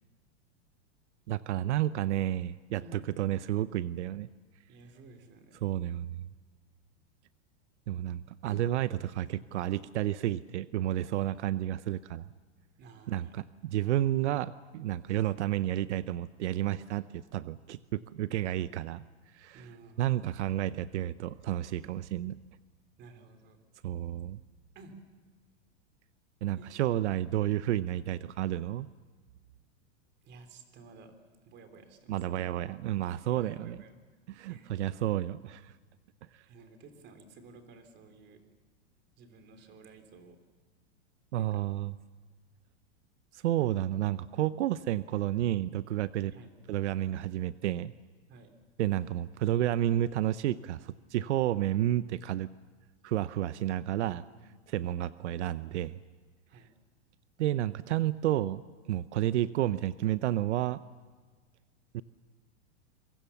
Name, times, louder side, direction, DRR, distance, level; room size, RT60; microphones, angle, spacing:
voice 1, 1.3-4.3 5.6-6.3 7.9-12.3 13.1-19.0 19.3-19.6 20.0-22.4 23.8-24.4 26.4-28.9 32.1-33.8 34.3-35.7 36.3-36.4 41.3-41.9 43.3-46.3 46.7-47.9 48.8-52.5 53.0-54.2 54.7-56.0 57.4-60.8 61.9-62.0, right 13 dB, 80° right, 15 dB, 0.8 m, -31 dB
voice 2, 4.7-5.6 8.5-8.6 12.8-13.4 19.5-20.3 23.0-23.6 24.8-25.0 26.6-26.9 30.2-31.2 31.5-32.5 33.3-33.9 34.5-34.8 36.4-38.4 39.2-40.4 41.4-41.6 46.3-46.5 48.3-48.5 54.0-54.4 56.5-56.7, right 3 dB, 30° right, 8 dB, 3.4 m, -53 dB
26.5 x 24.0 x 7.1 m, 1.4 s
supercardioid pair, 150°, 34 cm